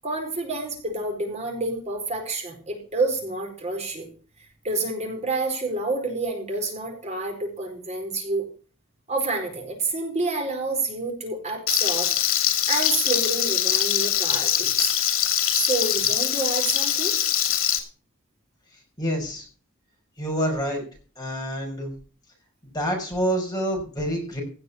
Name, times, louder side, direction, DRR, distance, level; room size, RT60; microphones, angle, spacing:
voice 1, 0.0-4.1 4.6-8.4 9.1-12.1 12.7-14.9 15.5-17.1, right 3 dB, 35° right, 3 dB, 4.5 m, -28 dB
Frying (food), 11.7-17.8, left 11 dB, 80° left, 2.6 m, -23 dB
voice 2, 19.0-19.5 20.2-20.8 21.2-21.9 22.7-24.4, equal, 20° left, -1 dB, 5.8 m, -27 dB
17.0 x 6.7 x 7.0 m, 0.38 s
head